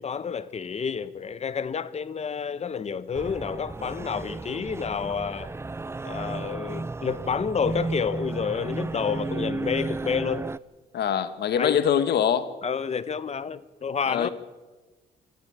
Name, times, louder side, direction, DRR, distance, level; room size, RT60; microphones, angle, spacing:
voice 1, 0.0-5.5 6.0-10.5 11.6-11.8 12.6-14.3, left 6 dB, 40° left, 1.2 m, -29 dB
sound 1, 3.1-10.6, right 3 dB, 15° right, 0.6 m, -33 dB
voice 2, 10.9-12.5 14.1-14.3, left 9 dB, 75° left, 1.7 m, -23 dB
25.0 x 14.0 x 8.9 m
cardioid pair, 100°, 17 cm